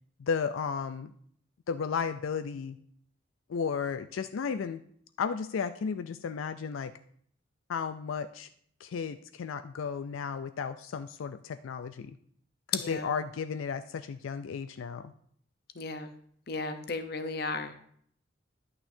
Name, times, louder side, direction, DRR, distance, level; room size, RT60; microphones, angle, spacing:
voice 1, 0.2-1.1 1.7-2.8 3.5-4.8 5.2-6.9 7.7-8.5 8.8-12.2 12.7-15.1, left 6 dB, 90° left, 10 dB, 0.4 m, -34 dB
voice 2, 12.7-13.1 15.8-16.1 16.5-17.8, left 4 dB, 50° left, 9 dB, 0.8 m, -34 dB
11.0 x 8.9 x 2.7 m, 0.62 s
head